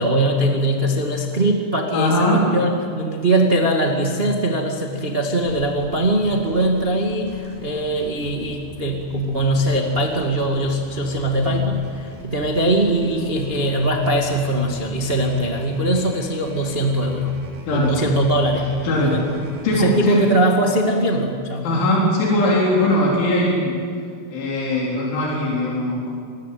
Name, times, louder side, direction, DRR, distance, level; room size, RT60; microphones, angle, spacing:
voice 1, 0.0-2.7 2.9-17.3 17.7-19.2 19.7-21.7, right 1 dB, 55° right, 0 dB, 0.6 m, -21 dB
voice 2, 1.9-2.5 17.6-18.0 18.8-19.2 19.6-20.3 21.6-23.8 24.3-26.1, left 1 dB, 80° left, -4 dB, 6.5 m, -20 dB
sound 1, 5.4-19.8, equal, 70° right, 7.3 m, -40 dB
27.0 x 20.0 x 8.6 m, 2.2 s
omnidirectional pair, 5.4 m